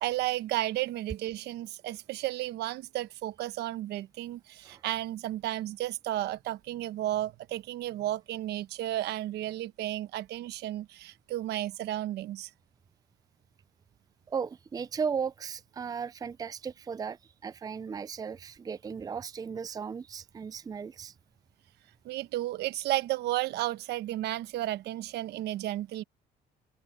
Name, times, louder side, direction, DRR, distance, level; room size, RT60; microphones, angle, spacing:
voice 1, 0.0-12.5 22.0-26.0, right 15 dB, 80° right, 1.1 m, -33 dB
voice 2, 14.3-21.1, right 6 dB, 20° right, 0.5 m, -36 dB
cardioid pair, 110°, 17 cm